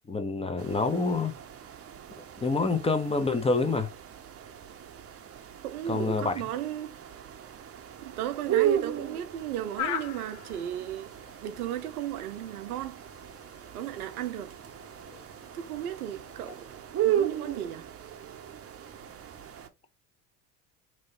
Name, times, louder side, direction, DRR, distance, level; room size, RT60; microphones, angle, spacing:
voice 1, 0.1-1.3 2.4-3.9 5.9-6.3, left 3 dB, 15° left, 0.7 m, -27 dB
sound 1, 0.6-19.7, right 11 dB, 30° right, 0.8 m, -36 dB
voice 2, 5.6-6.9 8.0-11.1 11.4-13.0 13.7-14.5 15.5-16.7 17.0-17.9, right 11 dB, 75° right, 0.7 m, -35 dB
sound 2, 9.8-16.7, left 9 dB, 60° left, 0.7 m, -42 dB
3.1 x 2.7 x 4.2 m
hypercardioid pair, 70°, 44 cm